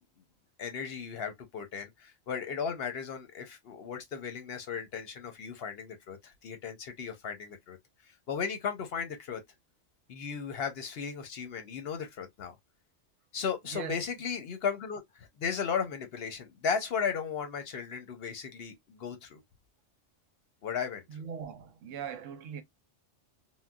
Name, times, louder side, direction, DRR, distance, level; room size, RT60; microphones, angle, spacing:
voice 1, 0.6-7.8 8.3-9.4 10.1-12.6 13.3-19.4 20.6-21.0, left 6 dB, 60° left, 0.7 m, -35 dB
voice 2, 13.7-14.0 21.1-22.6, right 7 dB, 80° right, 1.0 m, -40 dB
3.7 x 2.1 x 2.2 m
omnidirectional pair, 1.3 m